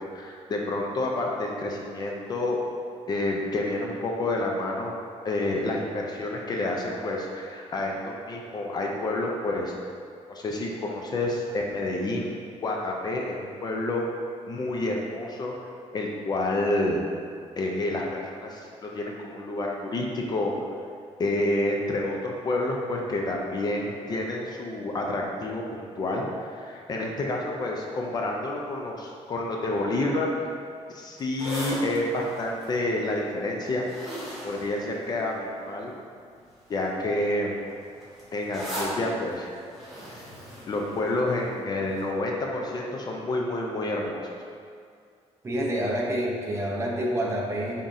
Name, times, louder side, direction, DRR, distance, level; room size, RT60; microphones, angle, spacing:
voice 1, 0.0-2.6 3.1-5.0 5.2-9.7 10.3-12.3 12.6-14.0 14.5-15.5 15.9-17.0 17.6-20.5 21.2-30.5 30.9-33.9 34.4-35.9 36.7-37.6 38.3-39.6 40.7-44.2, left 2 dB, 35° left, 0 dB, 0.5 m, -29 dB
sound 1, 31.2-35.6 36.4-36.7 36.9-41.5 42.0-42.1, equal, ahead, 1.5 m, -38 dB
voice 2, 45.4-47.8, equal, 25° right, -3 dB, 0.6 m, -28 dB
5.5 x 3.6 x 2.6 m, 2.2 s
cardioid pair, 145°, 12 cm